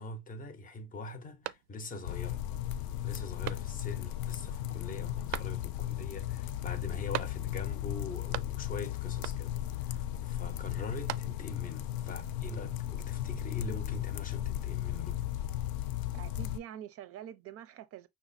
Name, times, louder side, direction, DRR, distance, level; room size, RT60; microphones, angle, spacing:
voice 1, 0.0-2.4 3.0-15.3, left 3 dB, 20° left, 0.7 m, -43 dB
sound 1, 1.4-2.1 2.5-2.6 3.4-4.1 5.3-5.9 7.1-7.7 8.0-8.8 9.2-9.7 10.7-11.7, right 16 dB, 80° right, 0.5 m, -41 dB
sound 2, 2.0-16.6, left 12 dB, 65° left, 0.6 m, -36 dB
voice 2, 16.1-18.1, right 10 dB, 40° right, 0.6 m, -45 dB
5.9 x 2.1 x 4.0 m
cardioid pair, 175°, 39 cm